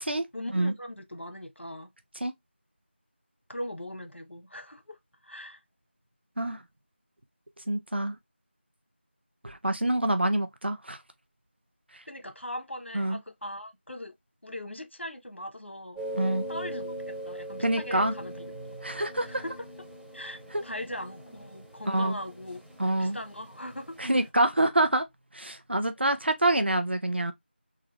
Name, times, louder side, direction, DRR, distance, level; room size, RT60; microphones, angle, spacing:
voice 1, 0.3-1.9 3.5-5.0 5.2-5.6 12.1-14.1 14.4-16.0 16.5-17.0 17.2-18.8 19.3-19.7 20.1-22.6 23.0-24.1, left 1 dB, 85° left, 1.1 m, -40 dB
voice 2, 7.7-8.1 9.4-11.0 12.9-13.2 16.2-16.4 17.6-18.1 18.8-19.4 20.5-20.6 21.9-22.2 22.8-23.2 24.0-25.1 25.3-27.3, right 1 dB, 65° right, 1.0 m, -26 dB
sound 1, 15.9-24.3, right 1 dB, ahead, 1.2 m, -41 dB
3.8 x 2.5 x 3.2 m
figure-of-eight pair, 170°, 6 cm